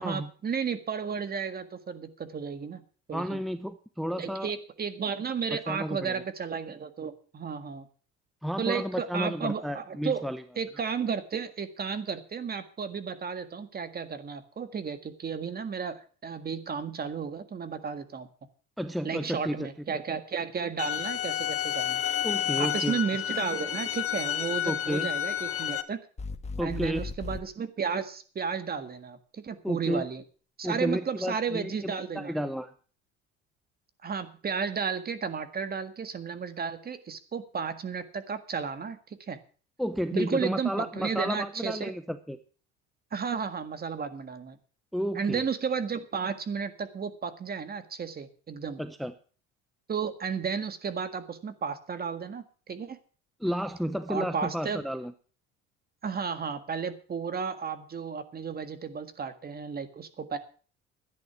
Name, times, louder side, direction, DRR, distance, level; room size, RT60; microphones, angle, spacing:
voice 1, 0.0-2.8 3.1-3.4 4.2-7.9 8.6-10.2 10.5-18.3 19.0-22.0 22.6-26.0 26.6-30.2 30.6-32.3 34.0-39.0 39.3-39.4 40.1-41.9 43.1-44.6 45.1-48.8 49.9-53.0 54.1-54.8 56.0-60.4, right 6 dB, 30° right, 10 dB, 1.7 m, -33 dB
voice 2, 3.1-4.5 5.5-6.2 8.4-10.4 18.8-19.7 22.2-23.0 24.6-25.1 26.6-27.0 29.6-30.0 30.6-32.7 39.8-42.4 44.9-45.4 48.8-49.1 53.4-55.1, equal, ahead, 11 dB, 0.7 m, -32 dB
sound 1, 20.8-25.8, left 11 dB, 50° left, 1.2 m, -30 dB
sound 2, 26.2-27.5, left 3 dB, 25° left, 1.4 m, -37 dB
12.5 x 10.5 x 6.0 m, 0.40 s
cardioid pair, 110°, 29 cm